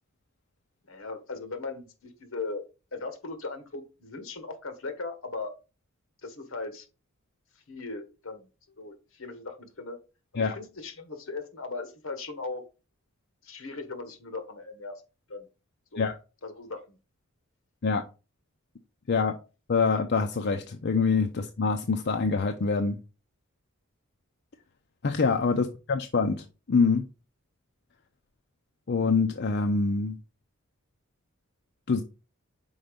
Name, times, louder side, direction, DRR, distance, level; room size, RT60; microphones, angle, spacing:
voice 1, 0.9-2.6 2.9-5.5 6.2-6.9 7.7-8.5 8.8-10.0 10.3-12.6 13.4-15.0 15.3-15.5 15.9-16.1 16.4-17.0, left 3 dB, 75° left, 8 dB, 1.3 m, -38 dB
voice 2, 19.7-23.0 25.0-26.4 26.7-27.0 28.9-30.2 31.9-32.0, left 4 dB, 55° left, 5 dB, 0.6 m, -25 dB
5.5 x 4.4 x 5.0 m, 0.32 s
head